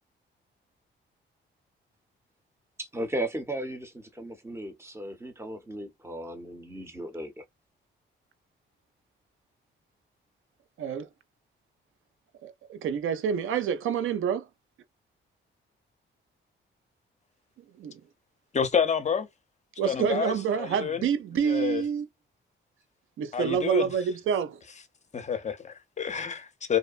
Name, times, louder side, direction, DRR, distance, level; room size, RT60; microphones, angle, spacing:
voice 1, 2.8-7.4, right 1 dB, 15° right, 0.7 m, -36 dB
voice 2, 10.8-11.1 12.4-14.5 17.8-18.0 19.8-22.1 23.2-24.6, right 7 dB, 85° right, 0.5 m, -28 dB
voice 3, 18.5-19.3 19.9-21.1 21.4-21.8 23.3-23.9 25.1-26.8, left 7 dB, 35° left, 0.5 m, -29 dB
2.7 x 2.1 x 2.4 m
cardioid pair, 115°, 20 cm